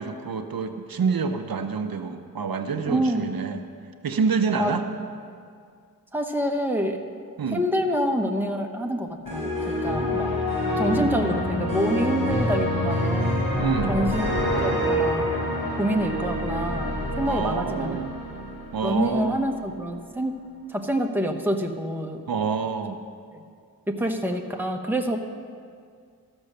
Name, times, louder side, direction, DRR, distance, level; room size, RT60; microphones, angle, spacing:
voice 1, 0.0-3.6 4.0-4.8 7.4-7.6 13.6-14.0 17.2-18.2 18.7-19.4 22.3-23.0, right 5 dB, 80° right, 7 dB, 0.7 m, -27 dB
voice 2, 2.9-3.2 4.5-4.9 6.1-7.0 7.5-10.3 10.8-13.4 13.9-14.3 14.6-15.3 15.7-18.0 18.8-20.3 20.7-22.2 23.3-23.4 23.9-25.2, equal, 5° right, 3 dB, 0.9 m, -27 dB
sound 1, 9.3-19.3, left 1 dB, 85° left, 3.6 m, -26 dB
14.0 x 6.2 x 6.6 m, 2.2 s
wide cardioid pair, 80°, 35 cm